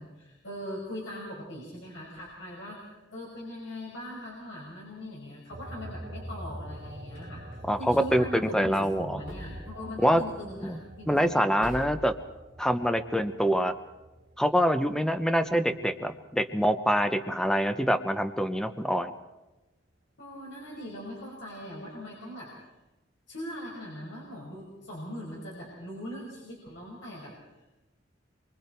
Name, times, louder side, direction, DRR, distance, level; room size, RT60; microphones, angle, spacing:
voice 1, 0.0-11.8 20.2-22.7 23.3-27.7, equal, 75° left, -3 dB, 5.6 m, -41 dB
sound 1, 5.5-16.4 16.8-18.2, right 1 dB, 45° right, 2.7 m, -45 dB
sound 2, 6.7-7.6 9.3-10.1 10.4-10.7 10.9-11.3 11.6-12.2, left 1 dB, 45° left, 4.9 m, -44 dB
voice 2, 7.7-9.2 10.0-10.2 10.6-10.8 11.1-12.1 12.6-13.7 14.4-19.1, equal, 5° left, 9 dB, 0.9 m, -25 dB
26.5 x 24.0 x 4.5 m, 1.0 s
head